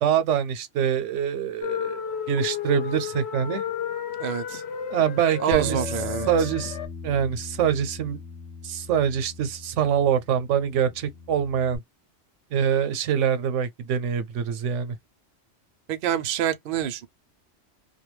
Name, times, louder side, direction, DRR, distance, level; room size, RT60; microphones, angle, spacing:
voice 1, 0.0-2.0 2.3-3.6 4.9-5.8 6.3-6.8 7.0-8.2 8.6-11.8 12.5-15.0, right 8 dB, 85° right, 0.9 m, -24 dB
sound 1, 1.6-6.9, left 8 dB, 65° left, 0.9 m, -32 dB
voice 2, 4.2-4.6 5.4-6.5 15.9-17.1, right 9 dB, 60° right, 0.6 m, -27 dB
Bass guitar, 5.5-11.8, left 4 dB, 15° left, 0.4 m, -39 dB
2.2 x 2.2 x 3.0 m
omnidirectional pair, 1.2 m